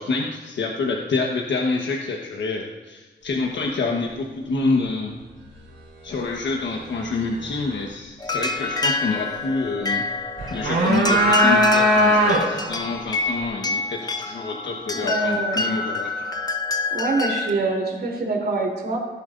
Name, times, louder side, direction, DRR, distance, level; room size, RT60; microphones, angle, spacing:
voice 1, 0.0-5.1 6.0-10.0 10.5-16.2, left 3 dB, 70° left, 0 dB, 1.2 m, -27 dB
sound 1, 8.2-17.5, left 4 dB, 20° left, 0.9 m, -26 dB
sound 2, 10.4-12.7, right 1 dB, 80° right, 3.8 m, -19 dB
voice 2, 14.9-15.6 16.9-19.0, right 3 dB, 60° right, -1 dB, 3.3 m, -25 dB
17.5 x 10.5 x 2.6 m, 1.3 s
wide cardioid pair, 115°, 19 cm